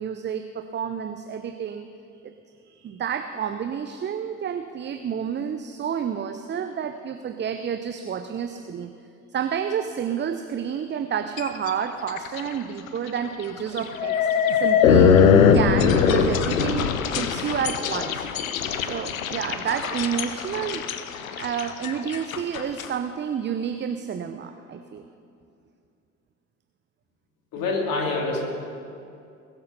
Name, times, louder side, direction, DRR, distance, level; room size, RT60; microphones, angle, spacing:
voice 1, 0.0-1.9 2.2-2.3 2.7-8.9 9.3-15.2 15.5-18.2 18.7-20.9 21.4-25.0, right 8 dB, 25° right, 8 dB, 0.7 m, -30 dB
sound 1, 11.4-11.7 12.1-12.5 12.9-13.0 13.8-22.9, left 7 dB, 75° left, 0.8 m, -21 dB
voice 2, 27.5-28.4, left 3 dB, 55° left, 0 dB, 3.2 m, -26 dB
21.5 x 8.0 x 5.6 m, 2.5 s
figure-of-eight pair, 55°, 40 cm